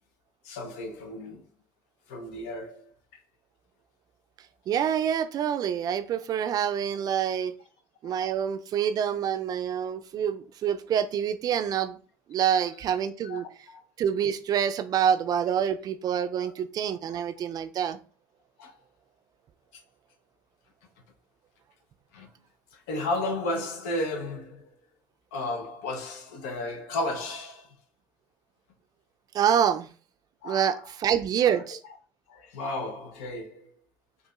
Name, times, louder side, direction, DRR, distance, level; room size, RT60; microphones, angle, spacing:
voice 1, 0.4-1.4 2.1-2.9 8.0-8.3 13.2-13.4 13.7-13.8 16.4-16.5 17.1-17.2 18.6-18.7 19.7-19.8 22.1-22.3 22.7-24.7 25.3-27.7 30.4-30.9 31.4-31.6 32.3-33.7, left 2 dB, 85° left, 0.6 m, -34 dB
voice 2, 4.7-7.5 8.0-12.0 12.3-13.5 14.0-18.0 29.3-29.9 30.4-31.8, right 9 dB, 55° right, 0.3 m, -26 dB
4.8 x 2.5 x 2.3 m
supercardioid pair, 70°, 8 cm